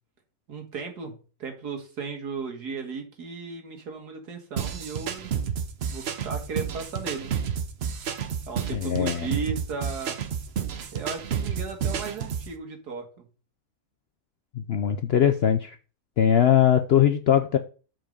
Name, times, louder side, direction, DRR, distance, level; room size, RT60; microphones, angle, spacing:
voice 1, 0.5-5.3 5.9-7.4 8.5-10.2 10.9-13.3, right 5 dB, 85° right, 2.1 m, -35 dB
sound 1, 4.6-12.5, right 7 dB, 50° right, 0.8 m, -30 dB
voice 2, 8.7-9.3 14.6-15.7 16.2-17.6, left 9 dB, 65° left, 0.6 m, -21 dB
7.6 x 4.5 x 5.2 m
omnidirectional pair, 1.7 m